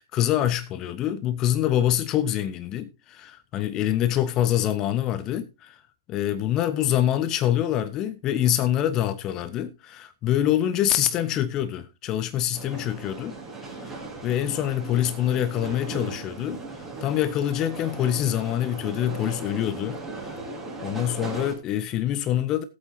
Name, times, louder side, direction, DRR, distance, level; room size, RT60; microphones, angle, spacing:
voice 1, 0.0-5.8 6.1-13.4 13.8-16.6 17.0-20.4 20.8-22.6, left 11 dB, 25° left, 0.7 m, -25 dB
sound 1, 12.5-21.5, right 3 dB, 10° right, 4.1 m, -37 dB
18.5 x 8.2 x 2.8 m
figure-of-eight pair, 115°, 2 cm